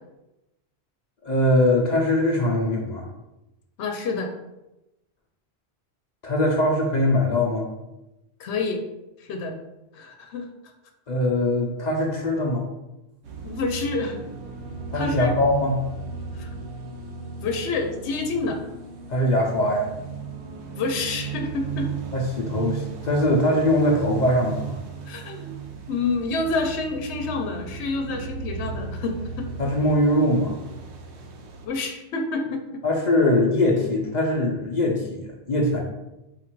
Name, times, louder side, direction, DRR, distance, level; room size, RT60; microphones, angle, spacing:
voice 1, 1.2-3.1 6.2-7.7 11.1-12.7 14.9-15.8 19.1-19.9 22.1-24.7 29.6-30.6 32.8-35.8, left 1 dB, 50° left, 0 dB, 0.7 m, -22 dB
voice 2, 3.8-4.3 8.4-8.8 9.2-9.6 9.9-10.5 13.4-14.2 14.9-15.3 16.3-16.5 17.4-18.6 20.8-21.9 25.1-25.6 25.9-29.5 31.6-32.7, left 3 dB, 85° left, 4 dB, 0.9 m, -28 dB
sound 1, 13.2-31.7, right 5 dB, 80° right, 1.0 m, -35 dB
4.3 x 2.5 x 4.4 m, 0.95 s
omnidirectional pair, 1.1 m